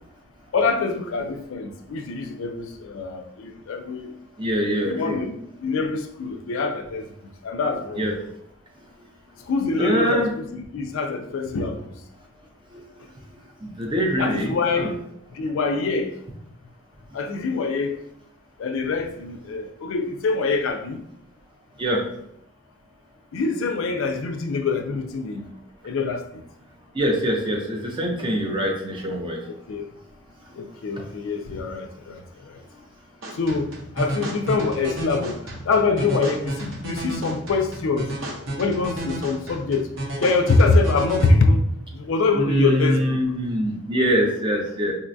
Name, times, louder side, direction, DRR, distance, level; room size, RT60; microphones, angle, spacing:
voice 1, 0.5-4.1 4.9-7.0 7.4-8.1 9.5-11.9 14.2-14.9 15.3-16.2 17.1-18.0 18.6-21.0 23.3-25.5 25.8-26.4 29.7-29.9 30.6-32.2 33.4-35.4 35.7-38.1 38.6-39.9 40.2-41.6 41.9-43.2, left 3 dB, 60° left, 6 dB, 0.3 m, -24 dB
voice 2, 4.4-5.2 8.0-8.1 9.8-10.3 12.7-12.8 13.6-14.9 21.8-22.0 26.9-29.4 31.0-31.1 42.3-44.9, equal, 20° right, 0 dB, 0.5 m, -24 dB
sound 1, 33.2-41.3, right 1 dB, 60° right, 0.9 m, -32 dB
3.9 x 2.2 x 2.6 m, 0.73 s
head